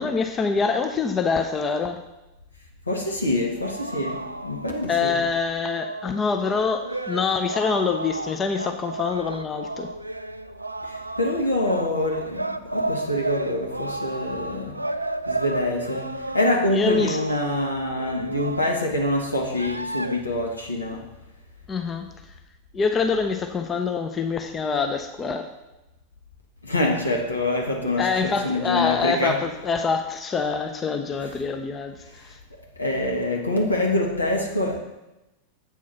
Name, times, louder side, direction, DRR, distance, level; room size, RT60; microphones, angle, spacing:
voice 1, 0.0-2.0 4.9-9.9 16.7-17.2 21.7-22.1 22.7-25.5 28.0-32.0 32.2-32.4, left 5 dB, 20° left, 6 dB, 0.6 m, -25 dB
voice 2, 2.9-5.2 10.9-14.7 15.3-16.1 16.3-21.0 26.6-29.4 31.2-31.3 32.8-34.8, left 1 dB, 80° left, 0 dB, 1.4 m, -25 dB
sound 1, 3.6-18.9 19.4-20.2, right 2 dB, 85° right, 0.3 m, -33 dB
7.9 x 4.7 x 5.7 m, 0.99 s
figure-of-eight pair, 90°, 0 cm